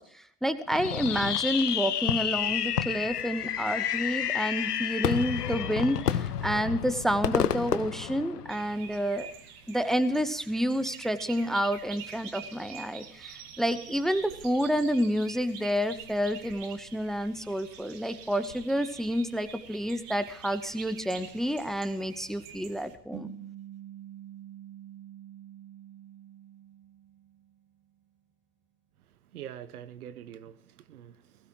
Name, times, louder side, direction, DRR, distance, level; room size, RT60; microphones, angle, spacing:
voice 1, 0.0-9.3 9.7-23.3, equal, ahead, 0.9 m, -29 dB
Fireworks, 0.7-8.8, left 9 dB, 80° left, 1.0 m, -30 dB
sound 1, 8.5-22.9, right 7 dB, 50° right, 2.4 m, -47 dB
sound 2, 23.1-27.8, right 11 dB, 25° right, 2.7 m, -46 dB
voice 2, 29.3-31.5, right 10 dB, 70° right, 1.1 m, -45 dB
20.0 x 16.5 x 3.0 m
figure-of-eight pair, 85°, 47 cm